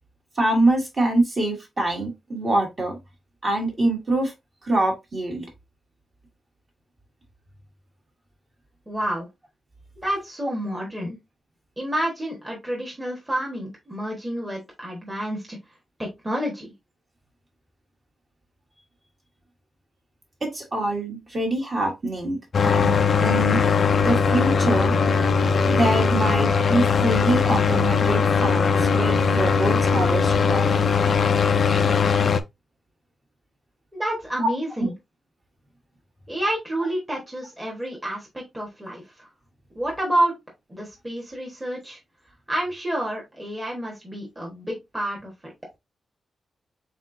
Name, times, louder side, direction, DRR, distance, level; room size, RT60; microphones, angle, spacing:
voice 1, 0.4-3.0 3.4-4.3 4.6-5.5 20.4-23.6 24.0-24.9 25.7-30.6 34.4-34.5 34.8-34.9, right 2 dB, 30° right, 1.5 m, -25 dB
voice 2, 8.9-9.3 10.0-11.2 11.8-15.6 16.0-16.7 33.9-34.9 36.3-39.3 39.7-40.3 40.7-42.0 42.5-45.5, right 1 dB, 10° right, 1.2 m, -29 dB
sound 1, 22.5-32.4, left 5 dB, 45° left, 0.4 m, -20 dB
4.2 x 4.0 x 2.6 m
wide cardioid pair, 170°, 0 cm